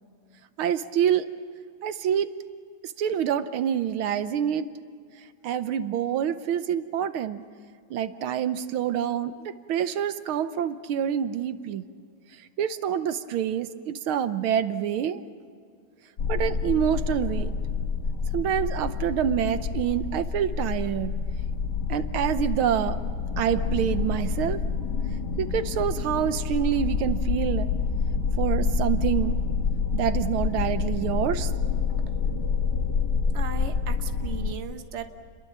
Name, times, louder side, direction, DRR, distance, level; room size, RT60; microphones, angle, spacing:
voice 1, 0.6-1.3 1.8-2.4 2.8-4.7 5.4-7.4 7.9-11.8 12.6-15.2 16.3-17.5 18.3-21.1 21.9-23.0 23.4-24.7 25.4-27.7 28.4-29.4 29.9-31.5, right 9 dB, 80° right, 11 dB, 1.7 m, -27 dB
sound 1, 16.2-34.5, left 5 dB, 55° left, 2.0 m, -27 dB
voice 2, 33.3-35.1, right 6 dB, 35° right, 7 dB, 1.4 m, -36 dB
30.0 x 22.0 x 7.4 m, 2.3 s
omnidirectional pair, 2.3 m